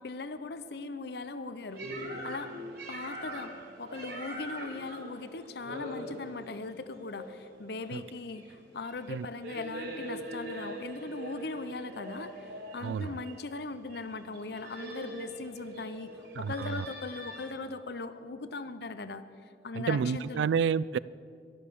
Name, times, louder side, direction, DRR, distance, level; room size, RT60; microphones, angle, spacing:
voice 1, 0.0-1.8 2.2-2.5 2.9-3.5 3.8-19.3 19.6-20.5, left 3 dB, 65° left, 0.7 m, -39 dB
sound 1, 1.7-17.5, right 1 dB, 70° right, 4.3 m, -42 dB
voice 2, 12.8-13.2 16.4-16.9 19.7-21.0, right 6 dB, 85° right, 0.3 m, -30 dB
12.0 x 12.0 x 6.8 m
head